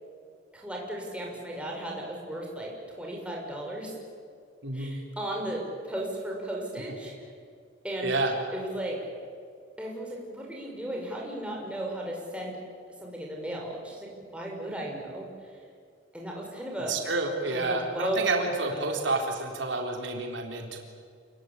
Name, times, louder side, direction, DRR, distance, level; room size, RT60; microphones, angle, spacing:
voice 1, 0.5-4.0 4.7-7.3 7.8-8.2 8.5-9.0 9.8-12.6 13.0-15.3 16.1-16.9 17.5-18.2 18.7-18.8, right 1 dB, 5° right, -2 dB, 6.1 m, -35 dB
voice 2, 4.6-5.0 8.0-8.3 16.9-20.8, right 3 dB, 75° right, 2 dB, 4.1 m, -29 dB
29.0 x 21.0 x 9.9 m, 2.2 s
head